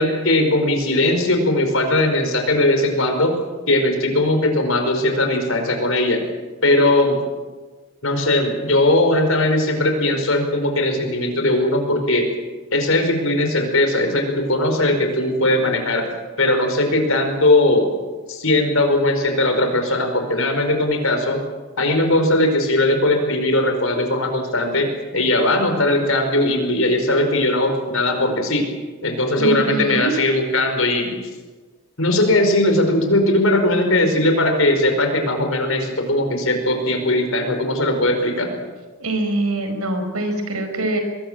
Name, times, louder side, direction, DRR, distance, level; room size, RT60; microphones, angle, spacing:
voice 1, 0.0-3.3 3.7-6.2 6.6-7.2 8.0-12.3 12.7-16.1 16.4-17.8 18.3-21.4 21.8-28.6 29.0-31.2 32.0-38.6, left 1 dB, 65° left, 5 dB, 5.1 m, -19 dB
voice 2, 29.4-30.1 39.0-41.0, right 2 dB, 80° right, 6 dB, 5.1 m, -23 dB
23.5 x 21.5 x 7.7 m, 1.3 s
head